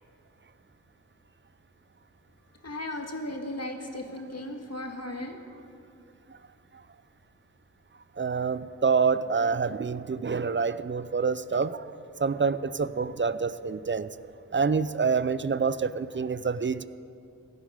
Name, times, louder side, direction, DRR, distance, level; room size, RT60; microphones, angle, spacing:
voice 1, 2.6-5.3, left 1 dB, 50° left, 3 dB, 1.8 m, -36 dB
voice 2, 8.2-11.8 12.2-14.1 14.5-16.8, right 5 dB, 35° right, 15 dB, 0.5 m, -27 dB
17.0 x 11.0 x 5.1 m, 2.4 s
cardioid pair, 45°, 32 cm